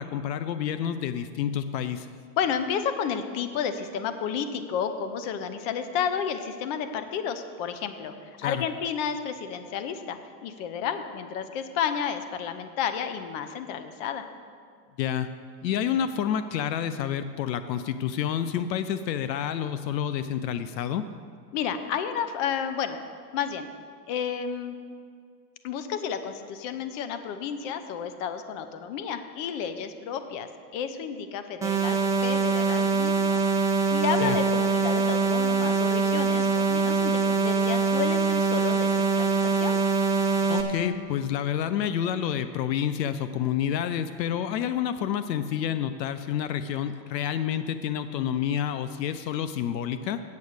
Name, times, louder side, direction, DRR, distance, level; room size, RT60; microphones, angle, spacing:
voice 1, 0.0-2.1 8.4-8.6 15.0-15.3 15.6-21.0 34.2-34.4 40.5-50.2, left 9 dB, 85° left, 11 dB, 0.7 m, -29 dB
voice 2, 2.4-8.1 8.4-14.3 21.5-23.0 23.3-23.7 24.1-24.8 25.6-33.6 33.9-39.8, left 7 dB, 50° left, 9 dB, 0.9 m, -31 dB
sound 1, 31.6-40.6, right 4 dB, 5° right, 0.8 m, -24 dB
8.5 x 8.4 x 6.5 m, 2.2 s
supercardioid pair, 130°, 49 cm